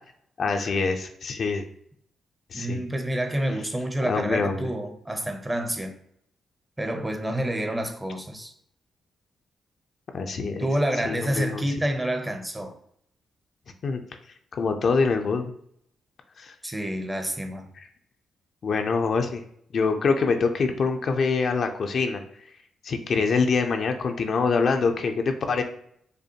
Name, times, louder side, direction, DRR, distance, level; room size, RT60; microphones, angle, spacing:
voice 1, 0.4-1.6 2.5-2.8 4.1-4.7 10.1-10.7 11.0-11.6 13.8-14.0 14.5-15.5 16.4-16.5 18.6-19.4 19.7-22.2 22.8-25.6, left 4 dB, 60° left, 0.5 m, -25 dB
voice 2, 2.5-6.0 6.8-8.5 10.6-12.8 16.6-17.7, right 1 dB, 15° right, 0.6 m, -28 dB
5.2 x 2.1 x 2.8 m
cardioid pair, 70°, 0 cm